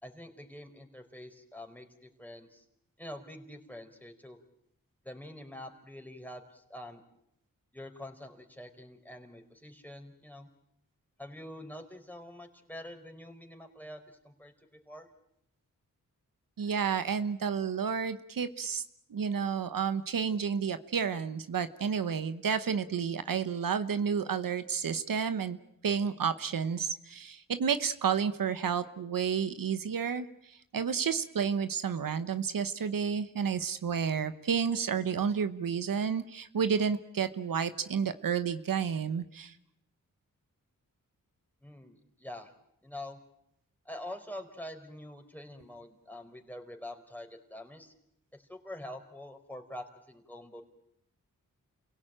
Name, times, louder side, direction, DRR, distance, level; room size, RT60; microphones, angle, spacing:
voice 1, 0.0-2.6 3.0-4.4 5.0-7.0 7.7-10.5 11.2-15.1 41.6-42.5 42.8-43.2 43.8-47.9 48.4-50.6, left 1 dB, 5° left, 5 dB, 4.5 m, -46 dB
voice 2, 16.6-18.8 19.1-25.6 25.8-39.6, right 6 dB, 75° right, 11 dB, 1.1 m, -31 dB
29.0 x 17.5 x 9.0 m, 0.76 s
cardioid pair, 65°, 33 cm